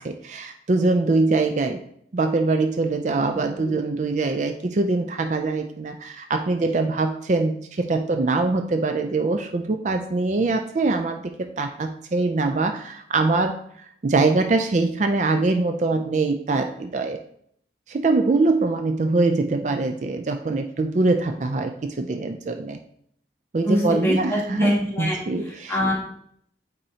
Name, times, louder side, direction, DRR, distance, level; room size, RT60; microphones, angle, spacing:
voice 1, 0.0-1.8 2.1-13.6 14.0-17.2 17.9-22.8 23.5-25.8, right 3 dB, 40° right, 6 dB, 0.4 m, -23 dB
voice 2, 23.6-25.9, equal, 15° left, -3 dB, 1.4 m, -24 dB
8.7 x 4.0 x 2.8 m, 0.66 s
head